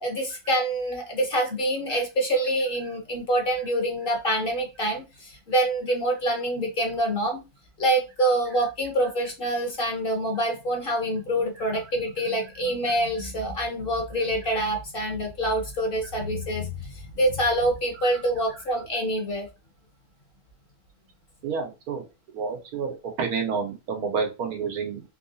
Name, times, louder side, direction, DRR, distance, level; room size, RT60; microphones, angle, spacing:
voice 1, 0.0-7.4 7.8-19.5, right 1 dB, 45° left, 2 dB, 0.9 m, -26 dB
voice 2, 21.4-22.0 22.3-25.0, right 5 dB, 85° right, 3 dB, 1.4 m, -29 dB
3.5 x 2.8 x 2.7 m, 0.27 s
omnidirectional pair, 1.5 m